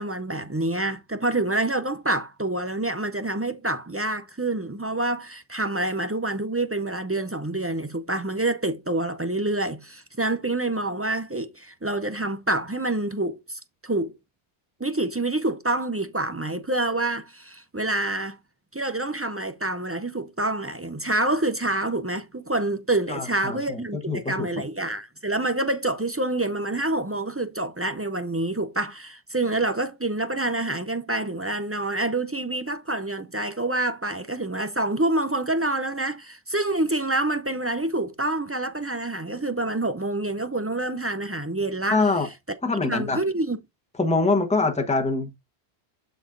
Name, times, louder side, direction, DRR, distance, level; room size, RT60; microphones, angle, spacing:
voice 1, 0.0-14.1 14.8-18.4 18.7-42.0 42.9-43.6, right 2 dB, 25° right, 0.3 m, -27 dB
voice 2, 23.1-24.5 41.9-42.3 42.6-43.2 44.0-45.4, left 3 dB, 5° left, 1.0 m, -24 dB
12.0 x 4.0 x 2.6 m
omnidirectional pair, 1.1 m